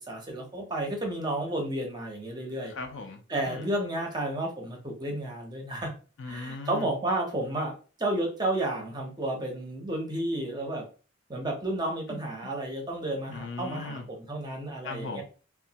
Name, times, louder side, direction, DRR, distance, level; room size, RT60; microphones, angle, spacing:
voice 1, 0.1-2.7 3.3-5.9 6.3-7.7 8.0-10.8 11.3-15.2, right 1 dB, 20° right, 0.6 m, -32 dB
voice 2, 2.7-3.7 6.2-6.9 12.1-12.5 13.3-14.1 14.8-15.2, left 3 dB, 60° left, 0.5 m, -39 dB
3.0 x 2.2 x 2.8 m
head